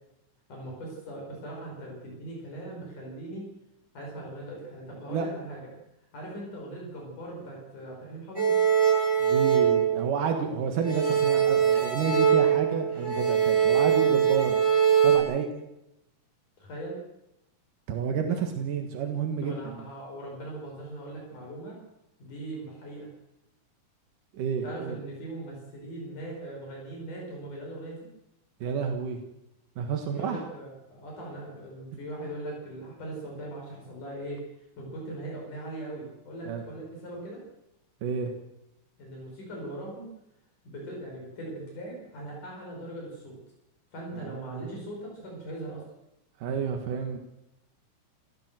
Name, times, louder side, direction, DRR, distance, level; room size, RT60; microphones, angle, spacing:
voice 1, 0.5-3.5 3.9-5.6 6.1-8.6 16.6-17.0 19.4-21.8 22.2-23.1 24.6-28.1 30.0-34.4 34.8-37.4 39.0-40.1 40.7-43.4 43.9-45.8, right 1 dB, 75° left, -1 dB, 7.0 m, -40 dB
sound 1, 8.4-10.5 10.8-15.2, right 8 dB, 5° right, 7.6 m, -23 dB
voice 2, 9.2-14.6 15.0-15.5 17.9-19.8 24.3-25.0 28.6-29.2 29.8-30.4 36.5-36.6 38.0-38.3 44.2-44.7 46.4-47.2, right 6 dB, 80° right, 4 dB, 3.2 m, -30 dB
28.0 x 15.5 x 7.6 m, 0.90 s
omnidirectional pair, 3.7 m